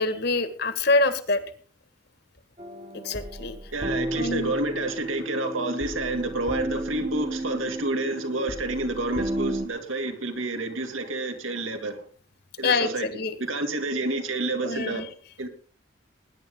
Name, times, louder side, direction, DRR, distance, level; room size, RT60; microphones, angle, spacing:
voice 1, 0.0-1.4 2.9-3.6 4.2-4.5 12.6-13.4 14.6-15.1, left 3 dB, 55° left, 1.8 m, -25 dB
sound 1, 2.6-9.7, right 1 dB, 30° right, 1.3 m, -33 dB
voice 2, 3.7-12.1 12.6-13.1 13.4-15.0 15.4-15.5, right 2 dB, 85° right, 2.7 m, -29 dB
20.5 x 10.5 x 3.9 m
head